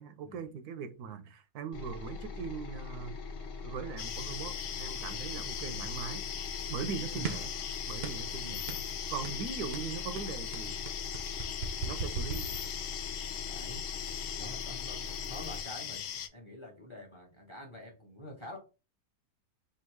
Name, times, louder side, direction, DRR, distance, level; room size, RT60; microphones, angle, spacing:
voice 1, 0.0-3.2 3.6-6.2 6.7-7.5 7.9-8.5 9.1-10.8 11.8-12.6, right 6 dB, 85° right, 1.2 m, -40 dB
sound 1, 1.7-15.6, left 4 dB, 60° left, 1.2 m, -42 dB
sound 2, 4.0-16.3, left 9 dB, 90° left, 1.1 m, -39 dB
sound 3, 7.2-7.6 8.0-8.3 8.7-8.9 9.2-9.5 9.7-13.1, right 5 dB, 60° right, 0.7 m, -39 dB
voice 2, 13.5-13.8 14.4-16.0 16.3-18.6, left 1 dB, 25° left, 0.9 m, -46 dB
3.6 x 2.6 x 4.6 m
omnidirectional pair, 1.6 m